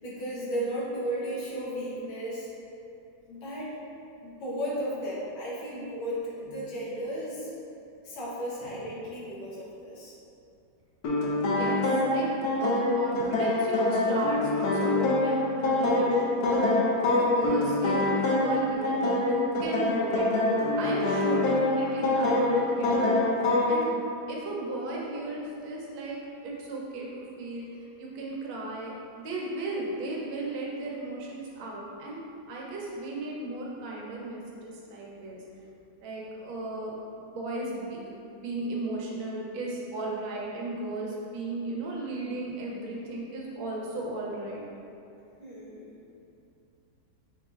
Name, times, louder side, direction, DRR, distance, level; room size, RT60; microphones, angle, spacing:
voice 1, 0.0-2.5 3.3-3.7 4.2-7.5 8.0-10.1 45.4-46.0, equal, 85° left, -7 dB, 1.8 m, -34 dB
sound 1, 11.0-23.8, left 2 dB, 70° left, 1.0 m, -25 dB
voice 2, 11.3-12.3 12.6-16.6 17.2-20.3 20.8-23.2 23.6-23.9 24.3-26.2 26.4-27.7 28.0-32.2 32.5-35.4 36.0-36.9 37.2-38.0 38.3-44.7, right 2 dB, 85° right, -3 dB, 1.6 m, -35 dB
5.1 x 3.9 x 2.4 m, 2.7 s
omnidirectional pair, 2.1 m